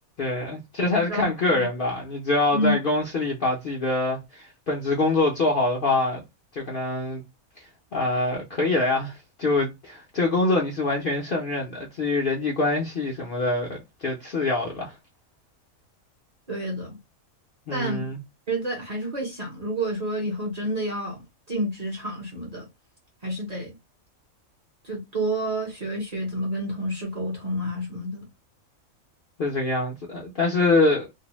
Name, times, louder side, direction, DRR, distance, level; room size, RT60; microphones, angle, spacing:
voice 1, 0.2-6.2 6.5-7.2 7.9-14.9 17.7-18.2 29.4-31.1, left 2 dB, 55° left, 0.6 m, -25 dB
voice 2, 1.1-1.7 2.5-2.8 16.5-17.0 17.7-18.0 18.5-21.2 21.5-22.7 23.2-23.7 24.8-28.3, right 1 dB, 35° right, 0.8 m, -29 dB
2.6 x 2.0 x 2.9 m
omnidirectional pair, 1.4 m